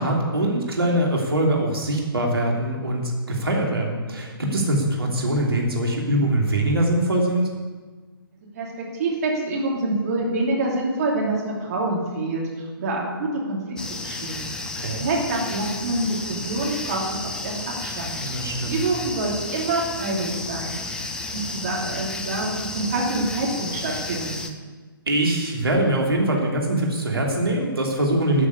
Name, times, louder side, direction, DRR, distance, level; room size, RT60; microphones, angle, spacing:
voice 1, 0.0-7.5 14.7-15.0 18.2-18.8 25.1-28.5, right 1 dB, 75° right, -1 dB, 3.0 m, -23 dB
voice 2, 8.5-14.5 15.0-18.2 18.6-20.8 21.3-24.5, right 2 dB, 40° right, -2 dB, 3.0 m, -26 dB
sound 1, 13.8-24.5, left 2 dB, 5° left, 0.6 m, -32 dB
13.0 x 7.1 x 8.4 m, 1.4 s
figure-of-eight pair, 130°, 13 cm